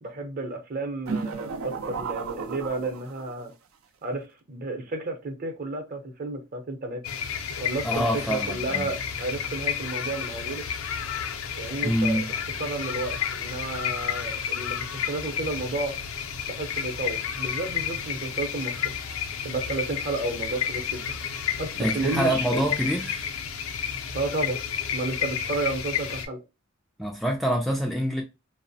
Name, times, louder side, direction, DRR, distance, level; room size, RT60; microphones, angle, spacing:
voice 1, 0.0-3.5 4.0-7.0 7.6-10.7 11.6-12.2 12.6-16.0 16.5-18.9 19.4-21.1 21.6-22.6 24.1-24.6 24.9-26.4, right 2 dB, 45° right, 0.7 m, -32 dB
sound 1, 1.1-3.4, right 5 dB, 80° right, 0.4 m, -33 dB
sound 2, 7.0-26.3, left 8 dB, 85° left, 0.5 m, -31 dB
voice 2, 7.8-8.9 11.8-12.2 21.8-23.3 27.0-28.2, equal, ahead, 0.3 m, -26 dB
2.7 x 2.0 x 2.6 m
head